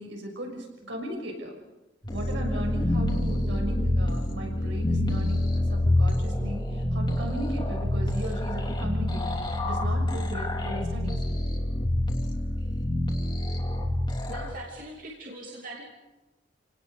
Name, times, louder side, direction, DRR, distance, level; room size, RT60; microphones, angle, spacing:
voice 1, 0.0-1.5 2.1-9.4 9.6-11.2, equal, 70° right, 2 dB, 6.5 m, -37 dB
sound 1, 2.0-14.5, left 1 dB, 25° left, 3.1 m, -27 dB
voice 2, 14.3-15.9, right 1 dB, 45° right, -2 dB, 3.0 m, -41 dB
28.5 x 18.5 x 6.8 m, 1.0 s
head